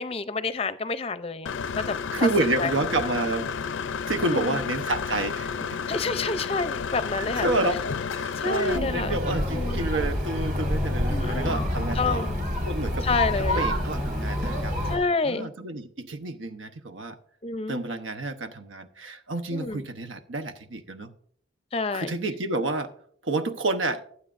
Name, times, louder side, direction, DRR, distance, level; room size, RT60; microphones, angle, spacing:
voice 1, 0.0-1.5 1.8-2.3 2.6-2.7 4.2-4.6 5.9-7.5 8.4-9.2 9.5-9.8 11.1-11.6 12.0-12.4 13.0-13.7 14.9-15.5 17.4-17.8 19.5-19.9 21.7-22.1, left 3 dB, 30° left, 12 dB, 0.5 m, -28 dB
Engine / Mechanisms, 1.5-8.8, left 6 dB, 85° left, 0.5 m, -31 dB
voice 2, 2.1-3.5 4.1-5.8 7.2-7.8 8.1-12.3 12.7-15.0 15.2-17.2 17.7-21.1 21.9-22.9 23.2-24.0, right 2 dB, 90° right, 8 dB, 0.9 m, -29 dB
sound 1, 8.7-15.0, left 1 dB, 45° right, 4.7 m, -27 dB
17.5 x 8.3 x 2.5 m, 0.63 s
head